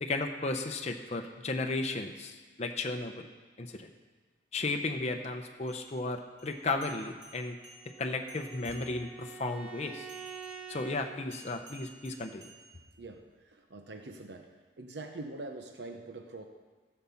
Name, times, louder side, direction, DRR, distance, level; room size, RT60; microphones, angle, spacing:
voice 1, 0.0-3.3 3.6-3.9 4.5-7.6 8.0-10.1 10.7-12.5, left 2 dB, 35° left, 4 dB, 0.7 m, -34 dB
sound 1, 5.6-9.3 10.1-13.3, right 3 dB, 35° right, 2.5 m, -55 dB
Bowed string instrument, 7.6-11.1, right 6 dB, 5° right, 0.6 m, -47 dB
voice 2, 13.0-14.5 14.8-16.5, right 2 dB, 65° right, 5 dB, 0.9 m, -44 dB
14.5 x 5.6 x 7.1 m, 1.4 s
head